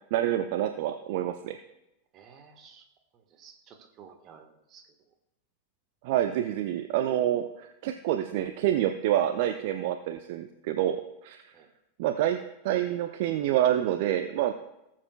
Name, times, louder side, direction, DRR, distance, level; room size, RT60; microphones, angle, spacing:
voice 1, 0.1-1.6 6.0-11.5 12.0-12.4 12.6-14.5, right 12 dB, 50° right, 7 dB, 0.5 m, -27 dB
voice 2, 2.1-2.8 3.1-4.9 11.5-11.7, right 6 dB, 30° right, 4 dB, 1.4 m, -53 dB
18.5 x 7.4 x 2.3 m, 0.89 s
figure-of-eight pair, 90°, 0 cm